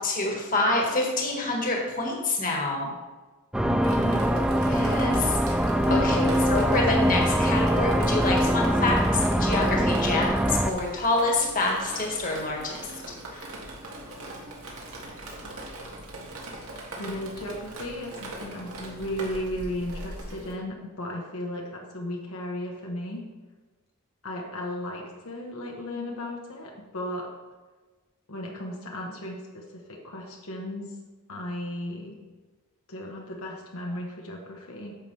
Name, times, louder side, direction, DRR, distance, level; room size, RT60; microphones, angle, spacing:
voice 1, 0.0-2.9 4.7-5.6 5.9-12.9 13.3-13.5, left 2 dB, 40° left, -1 dB, 1.6 m, -27 dB
sound 1, 3.5-10.7, equal, 5° right, 0.3 m, -23 dB
voice 2, 3.6-4.3 5.9-6.5 14.0-14.5 17.0-23.2 24.2-27.3 28.3-31.0 31.3-32.1 32.9-35.0, left 1 dB, 75° left, -1 dB, 1.2 m, -35 dB
Drip, 3.8-20.5, right 1 dB, 80° right, 1.8 m, -41 dB
9.6 x 7.1 x 3.3 m, 1.3 s
head